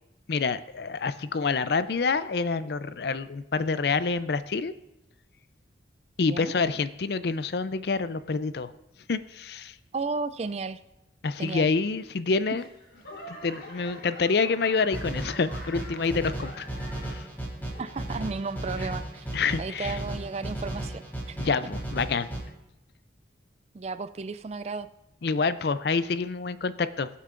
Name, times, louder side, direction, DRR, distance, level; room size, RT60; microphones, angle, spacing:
voice 1, 0.3-4.7 6.2-8.7 9.1-9.8 11.2-12.6 13.3-16.6 17.0-17.2 19.3-20.0 21.4-22.3 25.2-27.1, left 4 dB, 60° left, 13 dB, 0.4 m, -27 dB
voice 2, 9.9-10.8 11.4-11.7 17.8-19.3 19.6-21.5 23.7-24.9, right 4 dB, 35° right, 13 dB, 0.3 m, -34 dB
Laughter / Clapping / Crowd, 12.6-17.3 17.7-18.2 18.8-18.9, left 1 dB, 85° left, 3.8 m, -45 dB
sound 1, 14.9-22.4, right 1 dB, 10° left, 3.6 m, -35 dB
21.5 x 8.3 x 2.5 m, 0.93 s
head